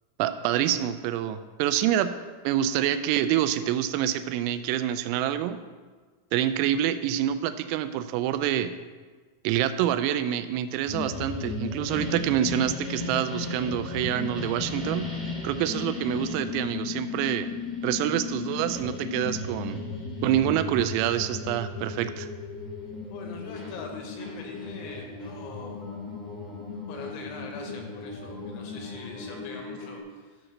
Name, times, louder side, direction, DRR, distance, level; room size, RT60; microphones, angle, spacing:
voice 1, 0.2-2.1 2.4-5.6 6.3-8.7 9.4-15.1 15.4-17.5 17.8-19.8 20.2-22.3, right 11 dB, 90° right, 12 dB, 3.3 m, -26 dB
sound 1, 10.9-30.0, left 4 dB, ahead, 0.9 m, -35 dB
voice 2, 23.1-25.8 26.9-30.4, left 4 dB, 75° left, 2 dB, 3.2 m, -43 dB
11.5 x 5.1 x 6.0 m, 1.4 s
omnidirectional pair, 5.9 m